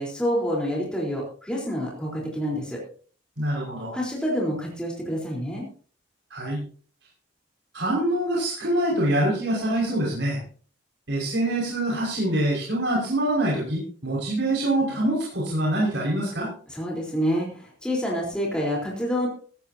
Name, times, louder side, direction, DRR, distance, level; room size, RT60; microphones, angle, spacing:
voice 1, 0.0-2.8 3.9-5.7 16.7-19.3, equal, 5° left, -3 dB, 4.0 m, -27 dB
voice 2, 3.4-4.0 6.3-6.6 7.7-10.4 11.1-16.5, right 1 dB, 65° right, -4 dB, 5.7 m, -25 dB
17.0 x 15.0 x 2.9 m, 0.44 s
head